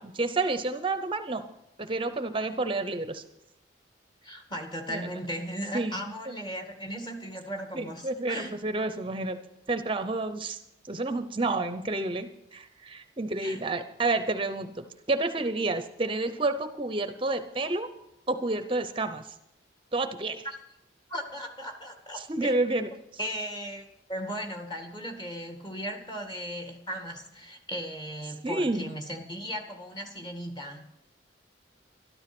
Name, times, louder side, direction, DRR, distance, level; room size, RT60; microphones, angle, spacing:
voice 1, 0.0-1.5 1.8-3.2 4.9-5.1 5.7-6.0 7.7-9.4 9.7-17.9 18.3-19.3 19.9-20.5 22.1-22.9 28.4-28.9, right 2 dB, 30° right, 10 dB, 0.7 m, -30 dB
voice 2, 4.2-8.6 13.4-13.6 20.4-20.6 21.1-22.5 23.2-30.8, equal, 25° left, 4 dB, 2.0 m, -37 dB
13.0 x 12.5 x 6.1 m, 0.85 s
head